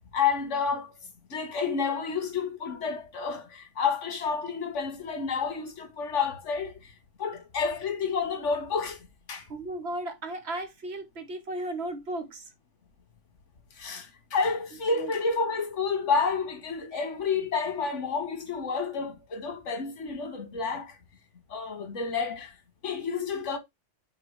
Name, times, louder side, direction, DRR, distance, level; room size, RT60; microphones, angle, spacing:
voice 1, 0.1-1.0 1.3-6.9 7.2-9.5 13.8-21.0 21.5-22.6 22.8-23.6, left 5 dB, 85° left, 1.7 m, -30 dB
voice 2, 9.5-12.5 15.0-15.1, right 1 dB, 60° right, 1.5 m, -35 dB
6.0 x 4.8 x 3.4 m
omnidirectional pair, 1.2 m